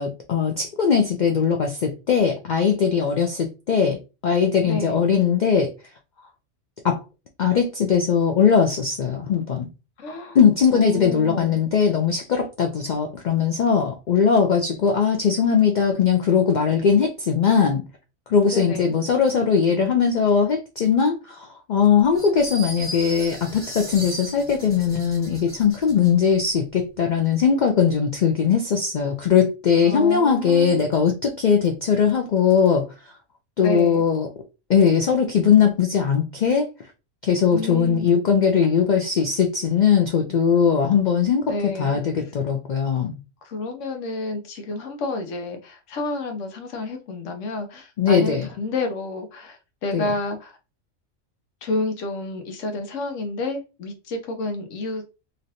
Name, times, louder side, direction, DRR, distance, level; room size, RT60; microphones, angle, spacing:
voice 1, 0.0-5.7 6.8-7.0 7.4-9.7 10.3-17.8 18.3-32.9 33.6-34.3 34.7-36.7 37.2-43.2 48.0-48.5 49.9-50.1, left 6 dB, 90° left, 0.4 m, -20 dB
voice 2, 4.6-5.0 10.0-10.4 10.7-11.6 18.5-19.0 29.8-30.9 33.6-34.0 37.5-38.1 41.5-42.0 43.4-50.6 51.6-55.0, left 2 dB, 70° left, 1.0 m, -30 dB
sound 1, 22.1-26.1, right 1 dB, 10° left, 1.0 m, -36 dB
3.1 x 2.5 x 2.6 m
omnidirectional pair, 1.3 m